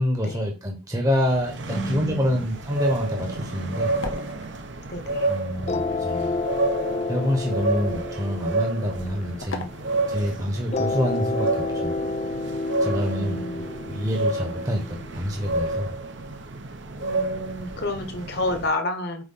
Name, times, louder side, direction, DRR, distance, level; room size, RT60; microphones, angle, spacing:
voice 1, 0.0-3.9 5.3-6.4 7.1-9.7 10.1-12.0 12.8-15.9, equal, 15° right, 1 dB, 1.1 m, -27 dB
sound 1, 1.2-18.7, right 2 dB, 60° right, 0.9 m, -30 dB
sound 2, 1.3-10.9, left 3 dB, 80° left, 1.1 m, -44 dB
voice 2, 1.7-2.4 4.9-5.3 13.1-13.7 17.0-19.3, left 2 dB, 50° left, 5 dB, 1.4 m, -30 dB
sound 3, 5.7-10.1 10.7-15.7, left 3 dB, 30° left, 0.4 m, -30 dB
8.2 x 3.1 x 5.7 m, 0.33 s
head